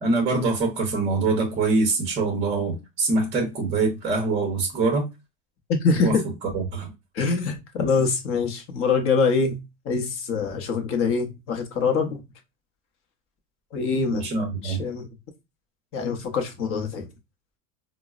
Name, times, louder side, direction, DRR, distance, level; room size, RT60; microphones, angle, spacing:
voice 1, 0.0-5.1 6.0-6.2 6.5-6.9 14.1-14.8, right 3 dB, 15° right, 0.6 m, -24 dB
voice 2, 5.7-6.2 7.1-9.6 9.8-12.2 13.7-14.3 14.6-15.1 15.9-17.1, left 4 dB, 30° left, 0.6 m, -24 dB
4.4 x 2.0 x 2.3 m
supercardioid pair, 155°, 42 cm